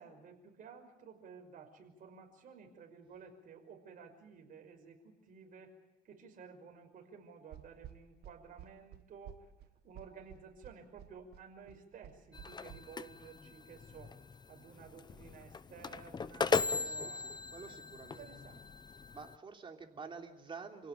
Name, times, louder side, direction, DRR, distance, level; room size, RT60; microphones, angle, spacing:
voice 1, 0.0-5.7 6.0-9.5 9.8-14.2 14.5-18.6, right 6 dB, 55° right, 3 dB, 5.8 m, -54 dB
sound 1, 7.5-12.8, right 10 dB, 70° right, 1.5 m, -52 dB
sound 2, 12.3-19.4, left 4 dB, 25° left, 0.8 m, -38 dB
voice 2, 16.8-18.3 19.1-20.9, right 5 dB, 30° right, 3 dB, 3.3 m, -49 dB
27.5 x 17.0 x 9.4 m, 0.96 s
cardioid pair, 110°, 17 cm